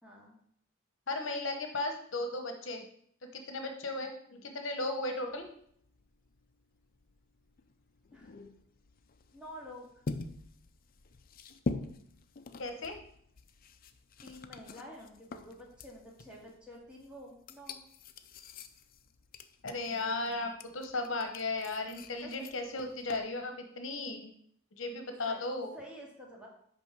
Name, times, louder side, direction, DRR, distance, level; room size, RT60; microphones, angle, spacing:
voice 1, 0.0-0.4 8.1-8.3 9.3-9.9 14.2-17.8 22.2-22.5 25.3-25.4 25.7-26.5, equal, 5° right, -3 dB, 2.2 m, -49 dB
voice 2, 1.1-2.8 3.2-5.5 12.6-13.0 19.6-24.3 24.8-25.7, left 2 dB, 70° left, 5 dB, 1.0 m, -36 dB
sound 1, 5.3-23.2, left 3 dB, 45° left, 0.5 m, -45 dB
6.1 x 5.4 x 6.1 m, 0.66 s
head